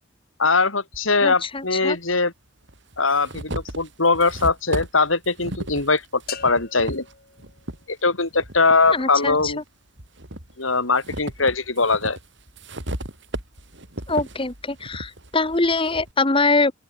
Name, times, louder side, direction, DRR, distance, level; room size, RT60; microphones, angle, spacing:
voice 1, 0.4-2.3 3.0-7.0 7.9-9.6 10.6-12.2, left 3 dB, 85° left, 4.7 m, -21 dB
sound 1, 0.9-1.0 2.1-2.2 2.7-7.8 8.3-9.5 10.0-16.1, right 1 dB, 65° right, 6.4 m, -35 dB
voice 2, 1.2-2.0 8.9-9.5 14.1-16.7, left 3 dB, 25° left, 1.4 m, -23 dB
sound 2, 6.3-8.3, left 8 dB, 50° left, 6.0 m, -40 dB
open air
head